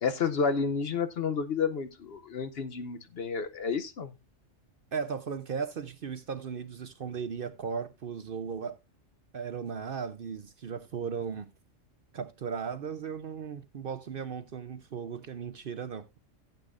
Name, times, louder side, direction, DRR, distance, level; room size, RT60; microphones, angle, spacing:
voice 1, 0.0-4.1, left 5 dB, 55° left, 0.9 m, -30 dB
voice 2, 4.9-8.8 9.3-11.5 12.1-16.2, right 6 dB, 55° right, 0.8 m, -36 dB
14.5 x 8.1 x 2.5 m
omnidirectional pair, 1.3 m